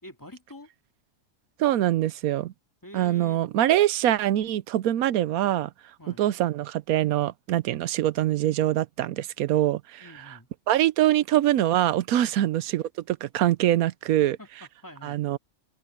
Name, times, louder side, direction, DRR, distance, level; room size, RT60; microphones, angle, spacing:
voice 1, 0.0-0.7 2.8-3.4 6.0-6.2 10.0-10.5 12.3-12.5 14.2-15.2, equal, 15° left, 2.5 m, -46 dB
voice 2, 1.6-2.5 2.9-5.7 6.2-10.0 10.7-14.4 15.0-15.4, right 13 dB, 90° right, 1.1 m, -24 dB
open air
omnidirectional pair, 1.5 m